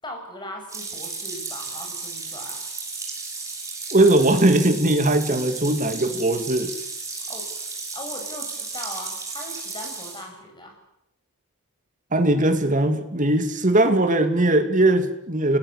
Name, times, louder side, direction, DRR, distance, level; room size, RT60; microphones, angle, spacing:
voice 1, 0.0-2.7 7.3-7.5 7.9-10.8, left 1 dB, 20° left, 3 dB, 7.6 m, -39 dB
sound 1, 0.7-10.2, right 4 dB, 15° right, 6.4 m, -34 dB
voice 2, 3.9-6.7 12.1-15.6, right 1 dB, 35° right, 8 dB, 2.6 m, -19 dB
29.0 x 20.0 x 8.4 m, 0.81 s
head